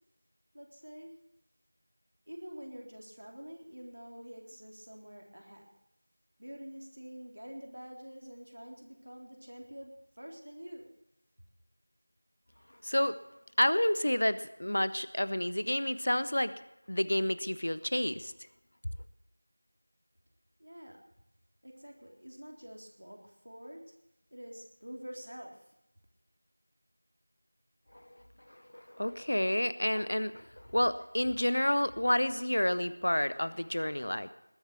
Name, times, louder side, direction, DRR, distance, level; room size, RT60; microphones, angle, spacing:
voice 1, 0.5-1.1 2.3-5.7 6.4-10.9 20.6-21.0 21.6-23.8 24.3-25.6, equal, 70° right, 1 dB, 3.6 m, -47 dB
voice 2, 12.8-13.2 13.6-16.5 16.9-18.3 28.7-34.3, left 1 dB, 45° left, 15 dB, 0.6 m, -29 dB
20.0 x 7.7 x 6.9 m, 0.83 s
figure-of-eight pair, 180°, 0 cm